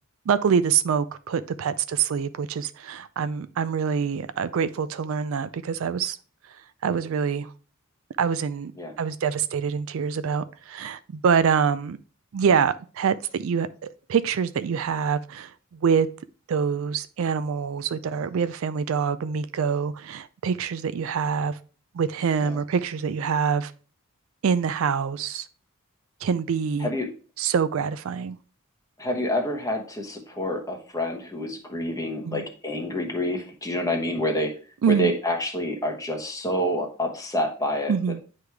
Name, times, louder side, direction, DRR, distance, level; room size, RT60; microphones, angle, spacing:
voice 1, 0.3-6.2 6.8-7.5 8.2-8.7 9.0-12.0 12.3-16.1 16.5-21.6 21.9-23.7 24.4-25.5 26.2-26.9 27.4-28.4 32.2-32.4 34.8-35.1 37.9-38.2, right 6 dB, 65° right, 0.4 m, -25 dB
voice 2, 29.0-34.5 34.9-37.9, left 1 dB, 15° left, 1.1 m, -28 dB
9.5 x 3.2 x 3.3 m
head